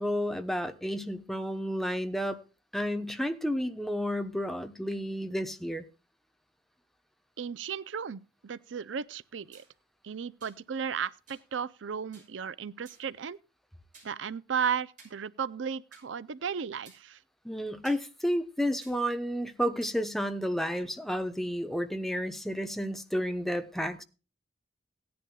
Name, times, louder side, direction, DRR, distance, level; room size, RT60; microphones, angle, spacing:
voice 1, 0.0-2.4 2.7-5.8 17.4-24.0, equal, ahead, 0.8 m, -31 dB
voice 2, 7.4-9.6 10.0-13.4 14.0-17.2, right 7 dB, 85° right, 0.5 m, -35 dB
sound 1, 9.5-9.7 10.4-10.6 11.3-11.5 12.1-12.3 12.8-13.1 13.9-14.1 15.0-15.2 15.9-16.1 16.8-17.0 17.8-18.0 18.8-19.0 19.8-20.0, right 4 dB, 45° right, 5.9 m, -55 dB
17.5 x 10.5 x 2.3 m
head